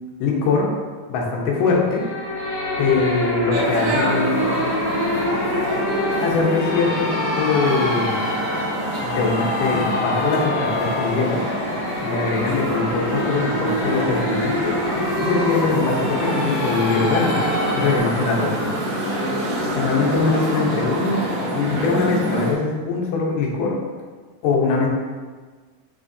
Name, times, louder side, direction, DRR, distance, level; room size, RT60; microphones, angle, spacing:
voice 1, 0.2-0.7 1.1-2.0 2.8-4.5 6.2-8.2 9.0-11.4 12.0-14.8 15.2-17.4 17.7-18.7 19.8-23.8 24.4-24.9, left 4 dB, 85° left, -2 dB, 2.6 m, -22 dB
sound 1, 1.8-18.0, left 1 dB, 65° left, 2.2 m, -26 dB
sound 2, 3.5-22.5, right 1 dB, 60° right, 2.2 m, -26 dB
6.1 x 6.0 x 2.7 m, 1.4 s
omnidirectional pair, 3.7 m